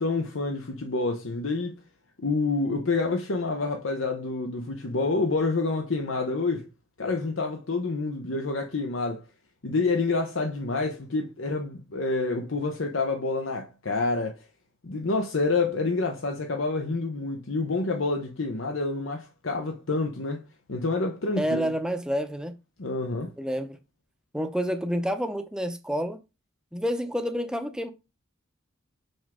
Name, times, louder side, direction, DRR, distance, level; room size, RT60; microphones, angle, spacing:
voice 1, 0.0-1.8 2.2-6.7 7.0-9.2 9.6-14.5 14.8-20.4 20.7-21.7 22.8-23.3, left 3 dB, 70° left, 0.9 m, -28 dB
voice 2, 21.4-22.5 23.4-23.8 24.3-26.2 26.7-27.9, equal, 5° right, 0.7 m, -28 dB
6.0 x 5.3 x 3.6 m
head